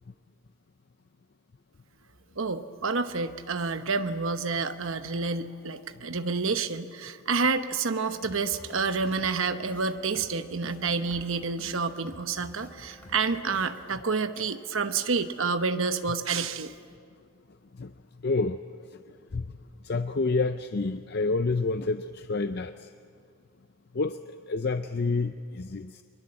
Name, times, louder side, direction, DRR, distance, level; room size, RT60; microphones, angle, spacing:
voice 1, 2.4-16.7, right 4 dB, 60° right, 9 dB, 1.0 m, -29 dB
sound 1, 8.2-16.2, equal, 5° left, 3.3 m, -51 dB
voice 2, 18.2-18.6 19.3-19.4 19.8-22.7 23.9-24.2 24.5-26.0, left 3 dB, 45° left, 9 dB, 0.5 m, -28 dB
23.5 x 22.5 x 7.8 m, 2.3 s
head